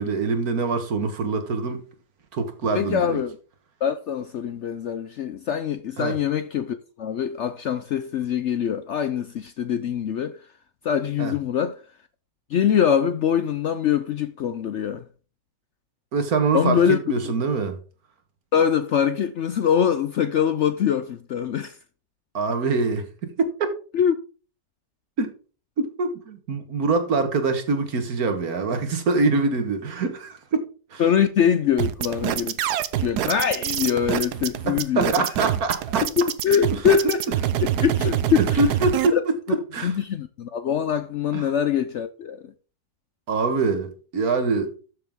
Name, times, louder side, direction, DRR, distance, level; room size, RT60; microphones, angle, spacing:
voice 1, 0.0-1.8 2.3-3.2 6.0-6.2 11.2-11.3 16.1-17.8 22.3-23.7 25.2-25.3 25.8-30.6 30.9-31.0 34.7-36.0 36.7-37.1 38.4-40.0 41.3-41.5 43.3-44.7, right 4 dB, 65° right, 1.9 m, -24 dB
voice 2, 2.7-3.3 3.8-10.4 10.8-11.8 12.5-15.1 16.5-17.0 17.2-17.3 18.5-21.8 23.9-24.2 31.0-32.6 33.0-35.2 36.0-37.2 37.8-38.6 39.1-39.2 39.8-42.5, left 8 dB, 65° left, 0.7 m, -23 dB
sound 1, 31.8-39.1, right 11 dB, 85° right, 1.3 m, -25 dB
12.5 x 6.7 x 3.6 m
omnidirectional pair, 1.7 m